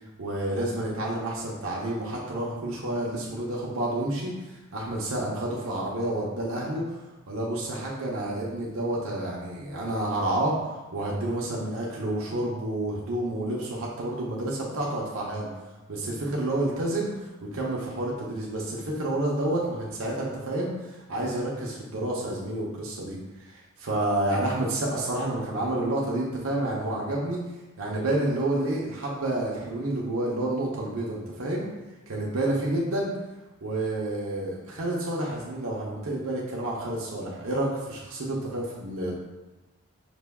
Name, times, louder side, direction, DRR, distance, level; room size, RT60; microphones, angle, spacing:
voice 1, 0.2-7.0 7.3-15.5 15.9-17.1 17.4-27.4 27.8-31.7 32.1-33.1 33.6-39.2, right 1 dB, 70° right, -4 dB, 0.7 m, -29 dB
5.0 x 2.2 x 3.5 m, 1.1 s
head